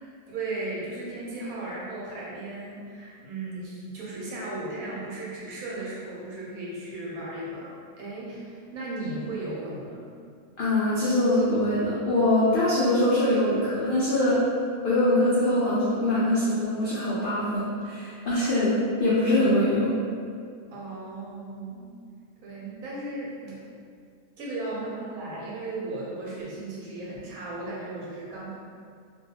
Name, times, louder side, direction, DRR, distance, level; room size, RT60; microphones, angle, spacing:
voice 1, 0.0-10.0 15.2-15.3 20.7-21.9 22.4-23.6 24.4-28.6, right 2 dB, 80° right, -6 dB, 1.1 m, -36 dB
voice 2, 10.6-14.4 14.8-18.7 19.0-20.0, left 1 dB, 75° left, -9 dB, 0.5 m, -23 dB
2.5 x 2.3 x 2.7 m, 2.2 s
omnidirectional pair, 1.5 m